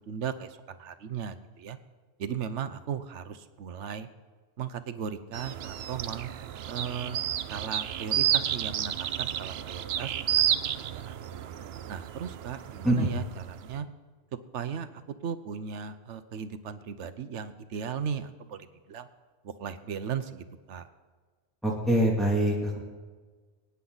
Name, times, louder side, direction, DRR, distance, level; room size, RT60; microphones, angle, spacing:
voice 1, 0.1-0.5 0.8-1.8 2.2-4.1 4.6-6.3 6.7-7.2 7.5-10.4 11.1-11.4 11.9-13.9 14.5-14.9 15.2-18.6 18.9-19.1 19.6-20.9, right 7 dB, 90° right, 11 dB, 1.1 m, -36 dB
sound 1, 5.3-13.7, right 10 dB, 70° right, 0.8 m, -31 dB
voice 2, 21.6-22.8, right 1 dB, ahead, -4 dB, 2.4 m, -24 dB
22.5 x 9.7 x 4.0 m, 1.4 s
omnidirectional pair, 1.2 m